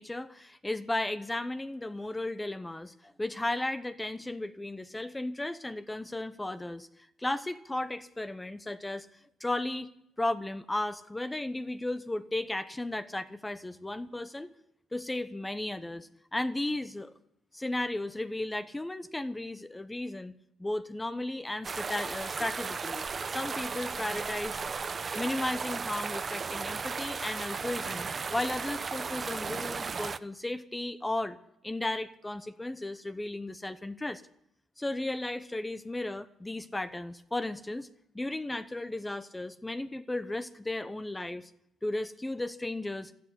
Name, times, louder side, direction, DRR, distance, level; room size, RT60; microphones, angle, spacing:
voice 1, 0.0-6.9 7.2-9.1 9.4-9.9 10.2-14.5 14.9-17.1 17.5-20.3 20.6-24.6 25.1-31.4 31.6-34.2 34.8-37.9 38.1-41.5 41.8-43.1, left 1 dB, 15° left, 11 dB, 0.9 m, -35 dB
sound 1, 21.6-30.2, right 5 dB, 40° right, 0.7 m, -35 dB
13.0 x 11.5 x 9.8 m, 0.79 s
cardioid pair, 90°, 0 cm